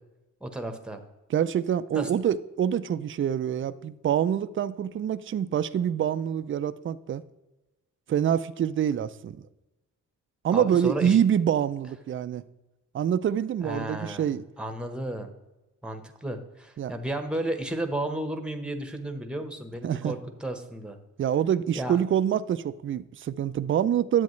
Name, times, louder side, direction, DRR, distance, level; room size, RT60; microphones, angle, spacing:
voice 1, 0.4-1.0 1.9-2.1 10.5-11.2 13.6-15.3 15.8-21.0 21.7-22.0, right 1 dB, 5° right, 1.0 m, -33 dB
voice 2, 1.3-7.2 8.1-9.4 10.4-12.4 12.9-14.4 16.8-16.9 19.8-20.2 21.2-24.2, right 9 dB, 40° right, 0.4 m, -26 dB
10.5 x 7.9 x 3.1 m
cardioid pair, 105°, 31 cm